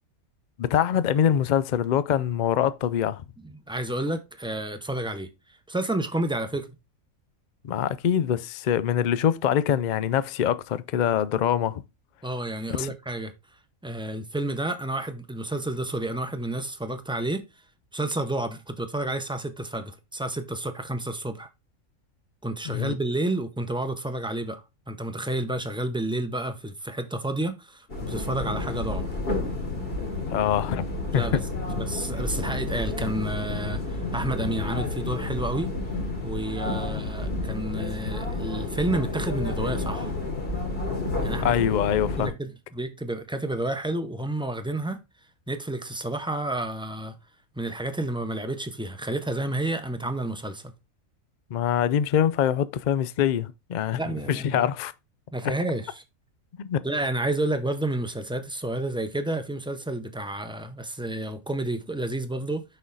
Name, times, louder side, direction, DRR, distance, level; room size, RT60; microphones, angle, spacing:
voice 1, 0.6-3.2 7.6-11.8 12.8-12.9 22.7-22.9 30.3-30.9 31.1-31.4 41.4-42.3 51.5-54.0 54.3-54.9 56.6-56.8, left 9 dB, 80° left, 0.4 m, -24 dB
voice 2, 3.4-6.8 12.2-13.3 13.8-17.5 17.9-21.5 22.4-29.0 31.1-31.4 31.8-35.7 36.2-40.1 41.2-41.5 42.2-45.0 45.5-47.1 47.6-50.7 53.9-54.7 55.3-56.0 56.8-62.6, right 1 dB, 5° right, 0.4 m, -30 dB
sound 1, 27.9-42.3, left 2 dB, 45° left, 2.3 m, -30 dB
6.2 x 5.5 x 3.9 m
omnidirectional pair, 1.4 m